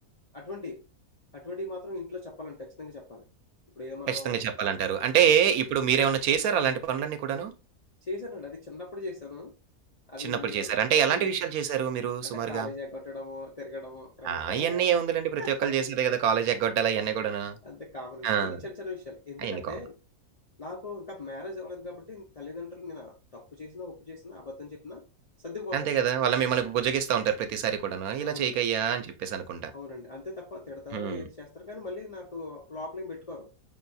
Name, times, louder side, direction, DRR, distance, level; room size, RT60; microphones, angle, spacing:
voice 1, 0.3-0.8 1.3-3.3 3.8-4.4 5.2-5.3 8.0-9.6 10.1-11.3 12.2-14.9 15.4-15.7 17.6-20.0 20.6-25.0 25.4-26.0 28.2-28.6 29.7-33.5, left 2 dB, 50° left, 0.4 m, -40 dB
voice 2, 4.1-7.5 10.2-12.7 14.2-17.6 18.2-18.6 19.4-19.6 25.7-29.7 30.9-31.3, right 8 dB, 75° right, 1.1 m, -26 dB
5.5 x 2.3 x 2.6 m
omnidirectional pair, 1.6 m